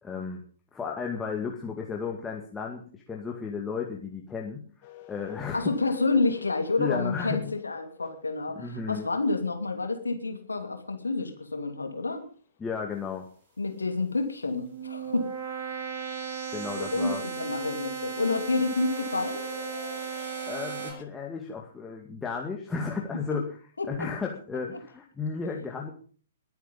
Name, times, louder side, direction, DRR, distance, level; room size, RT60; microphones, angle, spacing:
voice 1, 0.0-0.4 0.7-5.7 6.8-7.5 8.6-9.1 12.6-13.3 16.5-17.2 20.5-23.6 23.9-25.9, left 5 dB, 10° left, 0 dB, 2.2 m, -34 dB
sound 1, 4.8-8.9 11.3-11.4 12.7-13.0 13.3-21.0, left 12 dB, 40° left, 2.7 m, -48 dB
voice 2, 5.5-12.2 13.6-15.3 16.8-19.4 23.3-23.4 23.8-24.1, left 3 dB, 75° left, 6 dB, 2.8 m, -29 dB
sound 2, 14.4-20.9, right 6 dB, 50° right, 7.3 m, -36 dB
22.0 x 9.4 x 5.6 m, 0.43 s
figure-of-eight pair, 115°, 0 cm